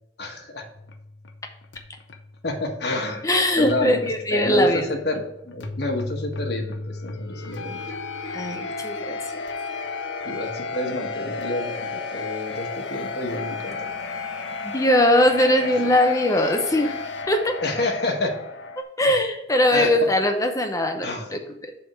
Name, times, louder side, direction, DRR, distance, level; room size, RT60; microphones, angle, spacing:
voice 1, 0.2-0.7 2.4-7.8 10.2-13.9 15.5-15.7 17.6-18.4 19.0-19.3 19.7-19.9 21.0-21.3, left 2 dB, 60° left, 1 dB, 1.2 m, -29 dB
sound 1, 0.7-18.8, left 4 dB, 75° left, 0.7 m, -34 dB
voice 2, 3.2-4.9 8.3-9.2 14.6-17.9 19.0-21.7, left 1 dB, 15° left, 5 dB, 0.7 m, -21 dB
7.7 x 3.6 x 6.4 m, 0.80 s
head